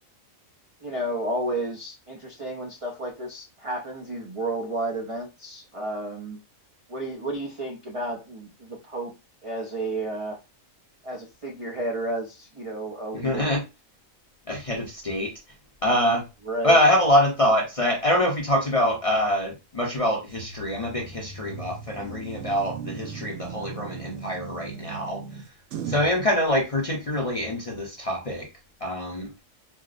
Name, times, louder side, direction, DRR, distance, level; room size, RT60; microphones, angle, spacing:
voice 1, 0.8-6.4 6.9-9.1 9.4-10.4 11.0-13.5 16.4-16.8, right 1 dB, 55° right, 0.3 m, -32 dB
voice 2, 13.1-13.6 14.5-15.3 15.8-16.3 16.6-25.4 25.8-28.5 28.8-29.3, left 1 dB, 40° left, 0.5 m, -24 dB
sound 1, 20.3-26.2, right 6 dB, 75° right, 0.9 m, -38 dB
4.4 x 2.0 x 2.4 m
omnidirectional pair, 1.4 m